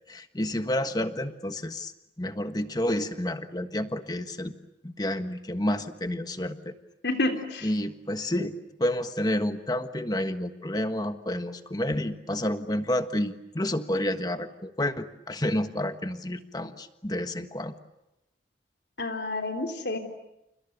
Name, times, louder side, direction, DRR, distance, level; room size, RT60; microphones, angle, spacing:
voice 1, 0.1-1.9 2.2-4.5 4.8-6.7 7.6-17.7, left 1 dB, 20° left, 9 dB, 1.4 m, -30 dB
voice 2, 7.0-7.7 19.0-20.0, left 2 dB, 75° left, 4 dB, 3.5 m, -29 dB
29.5 x 29.5 x 6.8 m, 0.89 s
head